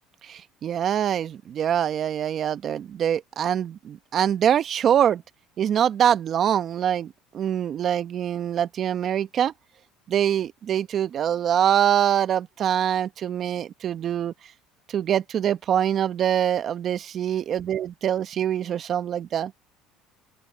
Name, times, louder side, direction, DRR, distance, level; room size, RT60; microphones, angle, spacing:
voice 1, 0.3-5.2 5.6-9.5 10.1-14.3 14.9-19.5, right 9 dB, 50° right, 1.3 m, -24 dB
open air
supercardioid pair, 90°, 0 cm